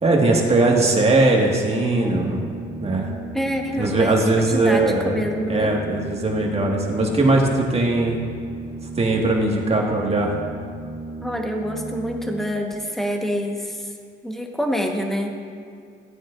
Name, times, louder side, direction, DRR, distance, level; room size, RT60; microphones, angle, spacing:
voice 1, 0.0-2.4 2.8-3.1 3.8-5.2 5.5-8.2 9.0-10.3, right 2 dB, 30° right, 0 dB, 1.8 m, -19 dB
Organ, 2.0-12.7, right 2 dB, 15° right, 1.3 m, -35 dB
voice 2, 3.3-5.8 11.2-13.9 14.2-15.3, equal, ahead, 2 dB, 1.3 m, -26 dB
15.5 x 9.2 x 2.6 m, 2.3 s
cardioid pair, 90°, 20 cm